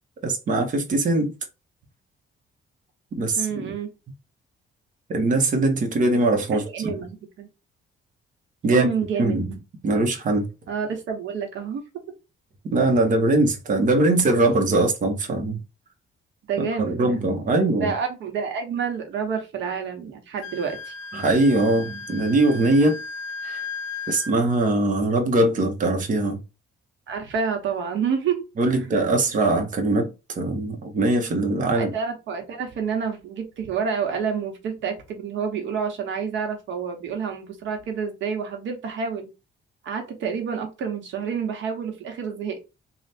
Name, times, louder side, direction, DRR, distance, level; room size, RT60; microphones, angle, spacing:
voice 1, 0.2-1.3 3.2-3.7 5.1-6.9 8.6-8.9 9.2-9.6 9.8-10.5 12.7-15.6 16.6-17.9 21.1-23.0 23.4-23.6 24.1-26.4 28.6-31.9, right 2 dB, 40° right, 0.9 m, -21 dB
voice 2, 3.4-3.9 6.5-7.5 8.7-9.4 10.7-11.8 16.5-17.2 17.8-20.9 27.1-28.4 31.7-39.3 39.8-42.7, right 6 dB, 70° right, 1.1 m, -28 dB
Wind instrument woodwind instrument, 20.4-24.3, left 4 dB, 90° left, 0.6 m, -36 dB
3.3 x 2.4 x 4.1 m
cardioid pair, 145°, 20 cm